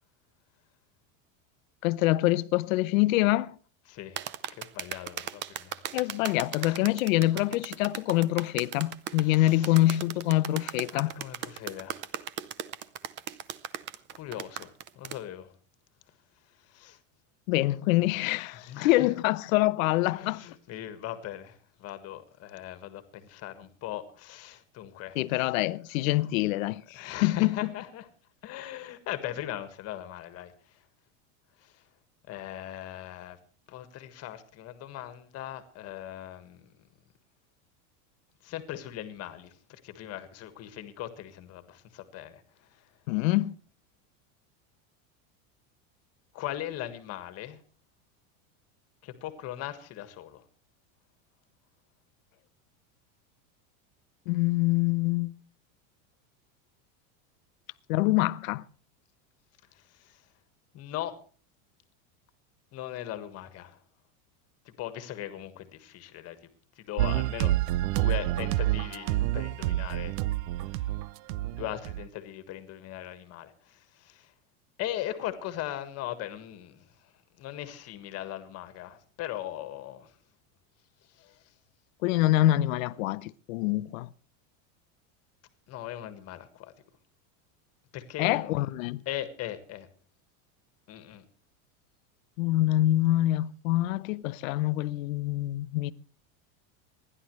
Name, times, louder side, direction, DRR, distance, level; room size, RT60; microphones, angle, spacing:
voice 1, 1.8-3.6 5.9-11.1 17.5-20.4 25.2-27.6 43.1-43.6 54.3-55.3 57.9-58.6 82.0-84.1 88.2-89.0 92.4-95.9, left 16 dB, 75° left, 0.8 m, -25 dB
voice 2, 3.9-4.2 4.5-5.8 6.6-6.8 7.3-7.5 9.1-9.8 10.9-12.0 14.1-15.5 16.6-17.0 18.0-19.1 20.1-25.2 26.2-26.3 26.9-28.1 28.4-30.8 31.6-31.8 32.3-33.4 33.7-36.7 38.4-42.9 46.3-47.6 49.0-50.4 59.7-60.2 60.7-61.2 62.7-63.8 64.7-66.5 66.8-67.5 67.9-70.2 70.8-70.9 71.6-74.3 74.8-77.1 77.4-80.2 81.1-81.4 85.7-86.7 87.9-88.6 89.1-89.9 90.9-91.2, left 12 dB, 40° left, 1.6 m, -39 dB
sound 1, 4.2-15.2, right 11 dB, 30° right, 0.6 m, -37 dB
sound 2, 67.0-72.1, right 15 dB, 80° right, 0.6 m, -28 dB
26.5 x 11.0 x 3.1 m
supercardioid pair, 155°, 40 cm